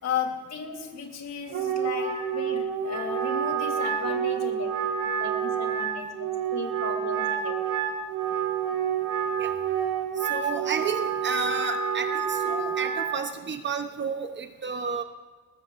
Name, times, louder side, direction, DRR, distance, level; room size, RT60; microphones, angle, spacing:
voice 1, 0.0-4.7 5.0-7.5, left 7 dB, 50° left, 2 dB, 3.5 m, -35 dB
Wind instrument woodwind instrument, 1.5-13.2, right 7 dB, 80° right, 2.8 m, -28 dB
voice 2, 10.2-15.0, right 5 dB, 35° right, 7 dB, 0.9 m, -31 dB
21.5 x 19.5 x 2.6 m, 1.4 s
cardioid pair, 140°, 33 cm